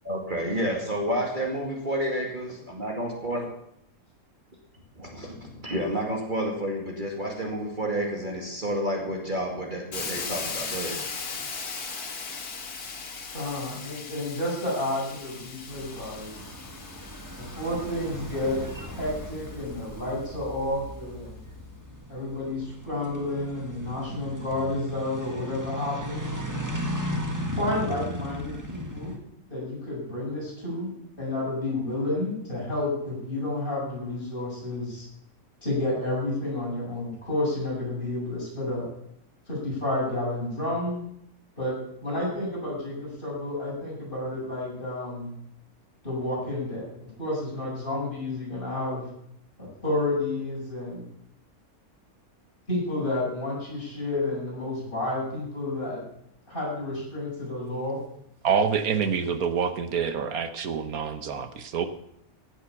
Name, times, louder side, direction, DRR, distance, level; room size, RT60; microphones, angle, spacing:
voice 1, 0.1-3.5 5.0-11.0, equal, 35° right, 0 dB, 2.3 m, -30 dB
Hiss, 9.9-19.8, left 5 dB, 90° left, 2.1 m, -38 dB
voice 2, 13.3-16.5 17.4-18.6 18.9-21.4 22.1-26.2 27.5-29.1 29.5-35.0 35.6-38.9 39.5-41.0 41.6-41.7 42.0-45.3 46.0-46.9 47.2-49.0 49.6-51.1 52.7-56.0 56.5-58.0, left 1 dB, 35° left, -5 dB, 7.5 m, -30 dB
sound 1, 15.7-29.2, equal, 15° right, 1.6 m, -36 dB
voice 3, 58.4-61.8, right 6 dB, 75° right, 9 dB, 1.4 m, -26 dB
16.0 x 8.0 x 7.1 m, 0.74 s
omnidirectional pair, 1.5 m